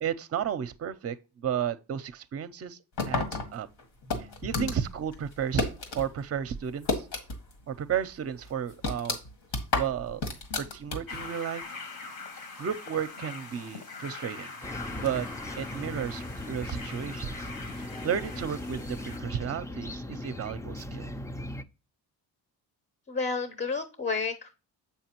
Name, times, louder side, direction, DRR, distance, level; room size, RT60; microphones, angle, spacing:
voice 1, 0.0-2.8 3.1-3.7 4.4-5.7 5.9-7.0 7.7-9.2 9.7-10.2 10.6-11.6 12.6-14.5 14.9-15.3 15.6-17.5 17.8-21.1, right 8 dB, 40° right, 0.6 m, -33 dB
sound 1, 3.0-6.1 6.4-7.6 7.9-8.0 8.4-11.3, left 3 dB, 80° left, 1.8 m, -31 dB
sound 2, 11.1-19.2, left 4 dB, 60° left, 1.2 m, -43 dB
sound 3, 14.6-21.6, left 1 dB, 10° left, 0.3 m, -38 dB
voice 2, 23.1-24.5, left 4 dB, 25° left, 0.7 m, -31 dB
7.2 x 5.6 x 2.9 m
cardioid pair, 105°, 40 cm